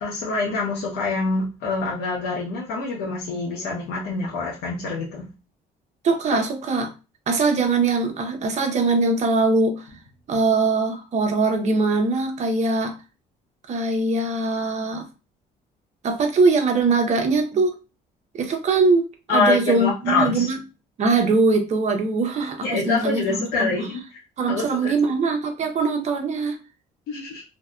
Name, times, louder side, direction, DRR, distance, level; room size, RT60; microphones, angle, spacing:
voice 1, 0.0-5.3 19.3-20.5 22.6-24.0 24.5-24.9 27.1-27.4, left 3 dB, 85° left, -5 dB, 0.7 m, -25 dB
voice 2, 6.0-6.9 7.3-9.9 10.3-13.0 13.7-15.1 16.0-17.8 18.3-20.6 21.0-23.7 24.4-26.6, right 3 dB, 45° right, 4 dB, 0.6 m, -22 dB
2.6 x 2.1 x 2.3 m, 0.29 s
cardioid pair, 110°, 17 cm